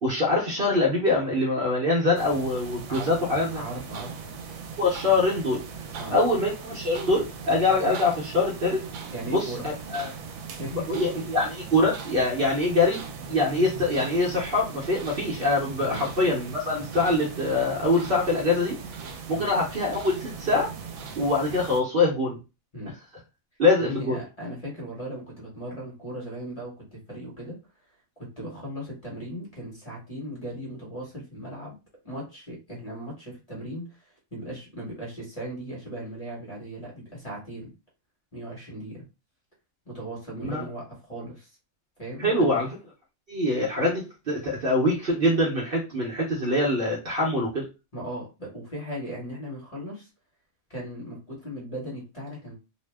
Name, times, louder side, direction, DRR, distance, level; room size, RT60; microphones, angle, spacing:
voice 1, 0.0-3.6 4.8-5.6 6.1-8.8 9.3-10.1 10.7-18.8 19.3-20.7 21.2-22.4 23.6-24.2 40.4-40.6 42.2-42.7 43.3-47.7, left 2 dB, 50° right, -2 dB, 0.9 m, -24 dB
sound 1, 2.1-21.8, right 5 dB, 80° right, 1.0 m, -39 dB
voice 2, 2.9-4.1 6.0-6.2 9.1-9.7 9.9-10.2 10.6-11.0 15.8-16.0 19.3-19.5 22.7-23.0 23.8-27.6 28.2-31.8 32.0-37.7 38.3-39.0 39.8-41.5 42.0-42.6 47.9-50.1 50.7-52.6, equal, 30° left, -3 dB, 1.4 m, -37 dB
2.7 x 2.1 x 3.3 m, 0.29 s
omnidirectional pair, 1.4 m